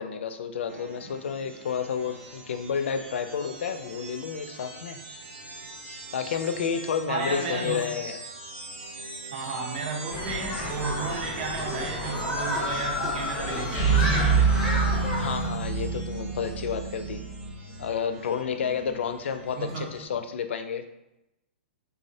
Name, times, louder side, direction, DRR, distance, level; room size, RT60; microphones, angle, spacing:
voice 1, 0.0-5.0 6.1-8.2 15.2-17.2 17.8-20.8, left 7 dB, 80° left, 8 dB, 0.4 m, -30 dB
sound 1, 0.7-20.1, right 2 dB, 85° right, 0.7 m, -43 dB
voice 2, 7.1-7.9 9.3-14.6 19.6-19.9, right 4 dB, 45° right, 1 dB, 0.7 m, -33 dB
Human group actions, 10.1-15.5, left 1 dB, 10° right, 0.8 m, -31 dB
sound 2, 13.7-17.5, right 5 dB, 25° left, 0.5 m, -25 dB
3.6 x 2.0 x 2.7 m, 0.90 s
hypercardioid pair, 170°, 6 cm